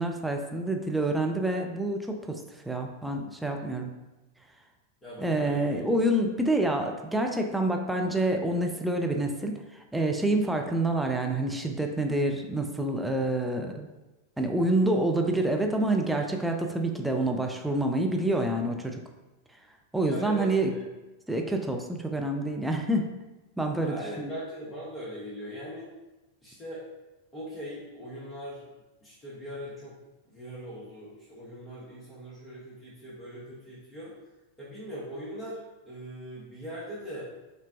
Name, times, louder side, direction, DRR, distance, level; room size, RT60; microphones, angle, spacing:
voice 1, 0.0-2.4 2.7-3.9 5.2-9.6 9.9-13.9 14.4-19.0 19.9-20.7 21.3-23.1 23.6-24.3, right 1 dB, 5° right, 2 dB, 0.4 m, -27 dB
voice 2, 5.0-5.9 20.0-20.8 23.8-25.9 26.4-26.8 27.3-28.6 29.0-30.0 30.3-34.1 34.6-37.3, equal, 20° left, -8 dB, 1.0 m, -40 dB
5.6 x 2.2 x 2.5 m, 1.1 s
figure-of-eight pair, 90°, 0 cm